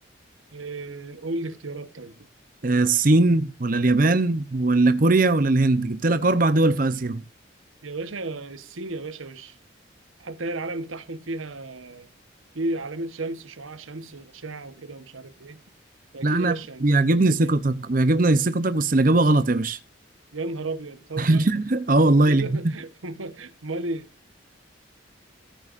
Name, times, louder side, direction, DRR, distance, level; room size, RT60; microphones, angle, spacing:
voice 1, 0.5-2.3 7.8-9.6 10.2-12.1 12.5-15.6 16.1-16.8 17.1-17.5 20.3-21.5 22.2-24.1, right 2 dB, 85° right, 1.2 m, -34 dB
voice 2, 2.6-7.2 16.2-16.5 16.8-19.8 21.2-22.6, right 2 dB, 45° right, 0.7 m, -20 dB
14.0 x 12.0 x 2.6 m
head